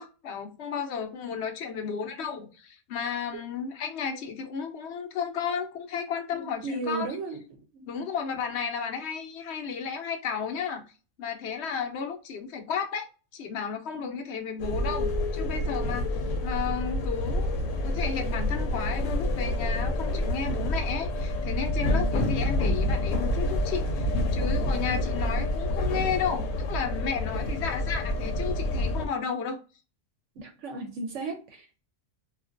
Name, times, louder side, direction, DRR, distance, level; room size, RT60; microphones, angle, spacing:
voice 1, 0.0-7.1 7.8-10.8 11.2-13.1 13.3-16.1 16.4-17.5 17.8-29.6, left 6 dB, 65° left, 0.8 m, -33 dB
voice 2, 6.4-7.4 7.7-8.0 13.9-14.1 21.9-22.1 24.4-24.6 27.3-27.5 30.4-31.8, right 3 dB, 75° right, 0.9 m, -36 dB
sound 1, 14.6-29.1, left 1 dB, 90° left, 1.0 m, -28 dB
2.4 x 2.3 x 2.4 m
omnidirectional pair, 1.3 m